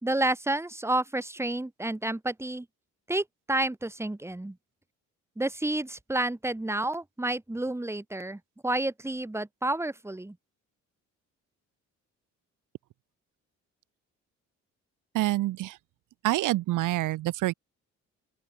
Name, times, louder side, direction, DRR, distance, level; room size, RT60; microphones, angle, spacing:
voice 1, 0.0-2.7 3.1-4.6 5.4-10.3, right 1 dB, 10° right, 2.4 m, -30 dB
voice 2, 15.1-15.8 16.2-17.5, right 16 dB, 90° right, 1.6 m, -27 dB
open air
cardioid pair, 90°, 30 cm